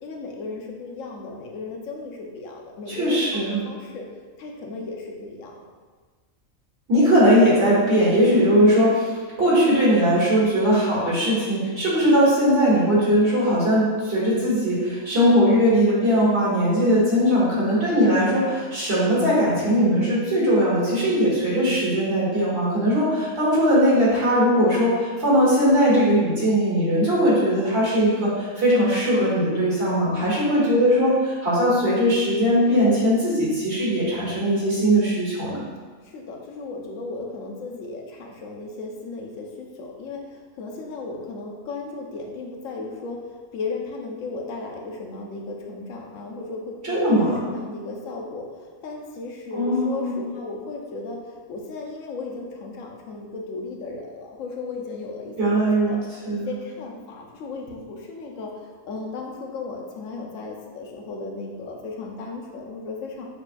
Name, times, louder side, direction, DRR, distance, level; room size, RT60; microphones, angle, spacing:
voice 1, 0.0-4.1 4.4-5.7 36.0-63.3, left 3 dB, 70° left, 0 dB, 1.0 m, -35 dB
voice 2, 2.9-3.6 6.9-35.6 46.8-47.5 49.5-50.2 55.4-56.0 56.2-56.5, equal, 50° right, -8 dB, 1.5 m, -20 dB
6.8 x 2.3 x 2.5 m, 1.5 s
omnidirectional pair, 1.5 m